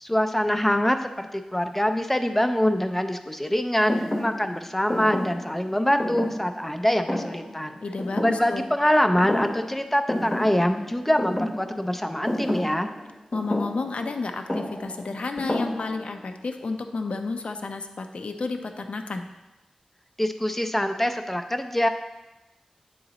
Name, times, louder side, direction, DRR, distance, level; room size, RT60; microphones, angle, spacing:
voice 1, 0.0-7.8 8.2-12.9 20.2-21.9, equal, 10° left, 7 dB, 0.4 m, -24 dB
Thump thud, 3.9-8.9 9.2-9.8 10.1-16.2, left 1 dB, 30° left, 0.9 m, -31 dB
voice 2, 7.8-8.7 13.3-19.3, left 3 dB, 75° left, 5 dB, 0.5 m, -31 dB
8.9 x 3.9 x 4.0 m, 1.0 s
wide cardioid pair, 100°, 2 cm